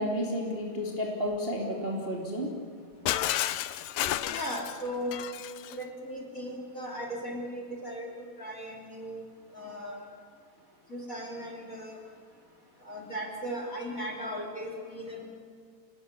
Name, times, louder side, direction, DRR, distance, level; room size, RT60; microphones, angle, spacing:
voice 1, 0.0-2.5, equal, 15° right, -1 dB, 2.4 m, -32 dB
Shatter, 3.1-5.8, left 13 dB, 80° left, 1.9 m, -31 dB
voice 2, 4.3-5.1 5.7-9.2 9.5-10.0 10.9-12.0 12.8-15.3, equal, 20° left, 1 dB, 3.4 m, -37 dB
28.0 x 19.0 x 9.9 m, 2.1 s
omnidirectional pair, 4.8 m